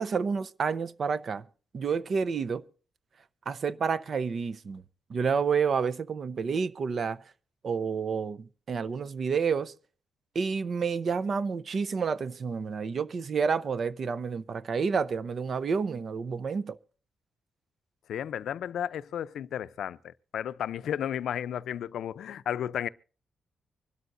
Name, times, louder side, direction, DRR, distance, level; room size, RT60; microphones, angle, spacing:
voice 1, 0.0-1.4 1.7-2.6 3.5-4.8 5.1-7.2 7.6-9.7 10.3-16.8, right 5 dB, 45° right, 0.7 m, -29 dB
voice 2, 18.1-22.9, left 9 dB, 80° left, 0.5 m, -33 dB
25.0 x 12.5 x 2.6 m
wide cardioid pair, 150°, 0 cm